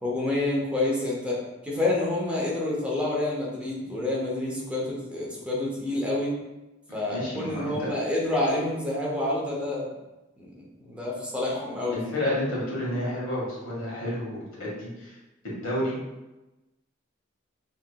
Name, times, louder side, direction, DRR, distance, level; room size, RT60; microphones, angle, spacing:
voice 1, 0.0-6.3 6.9-9.9 10.4-10.5 10.8-12.2, left 2 dB, 5° right, -5 dB, 0.6 m, -28 dB
voice 2, 7.1-7.9 11.9-15.2 15.4-16.0, left 1 dB, 85° left, -5 dB, 1.2 m, -30 dB
3.1 x 2.7 x 2.3 m, 1.0 s
head